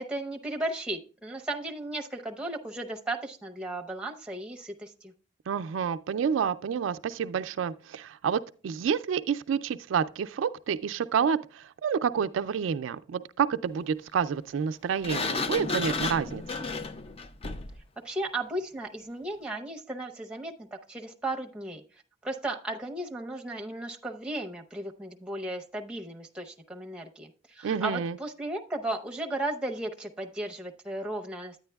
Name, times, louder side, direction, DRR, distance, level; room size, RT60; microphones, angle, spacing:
voice 1, 0.0-5.1 18.0-21.8 22.2-27.3 27.6-31.6, right 1 dB, 5° right, 0.7 m, -35 dB
voice 2, 5.5-16.4 27.6-28.2, right 7 dB, 80° right, 0.3 m, -29 dB
Sliding door, 15.0-17.8, left 3 dB, 30° left, 0.4 m, -32 dB
9.5 x 9.5 x 2.3 m
head